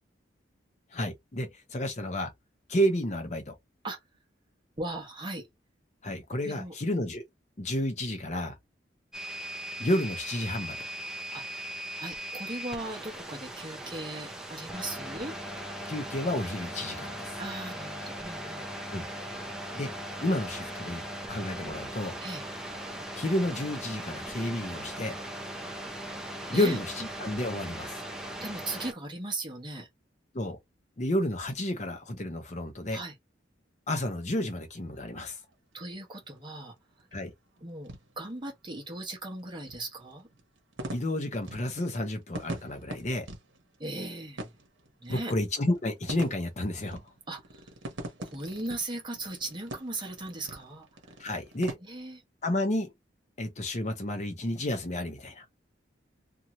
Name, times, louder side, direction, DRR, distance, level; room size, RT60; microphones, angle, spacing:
voice 1, 0.9-2.3 2.7-3.5 6.0-7.2 7.6-8.6 9.8-10.9 15.8-17.3 18.9-19.0 19.7-19.9 20.2-21.0 21.3-22.2 23.2-25.2 26.5-27.9 30.3-30.6 31.0-33.0 33.9-35.4 37.1-37.3 40.9-43.3 45.1-47.0 51.2-51.8 52.4-52.9 53.4-55.4, left 1 dB, 40° left, 0.6 m, -31 dB
voice 2, 4.8-5.5 6.4-7.0 11.3-11.5 12.0-15.4 17.4-18.6 22.2-22.4 26.5-26.8 28.4-29.9 32.9-33.1 35.7-36.7 37.6-40.3 43.8-44.5 45.0-45.3 47.3-47.7 48.2-51.2 51.8-52.2, right 2 dB, 25° right, 0.9 m, -38 dB
sound 1, 9.1-28.9, right 1 dB, 5° right, 0.5 m, -39 dB
sound 2, 34.7-51.7, right 1 dB, 80° right, 0.9 m, -44 dB
2.7 x 2.3 x 2.9 m
head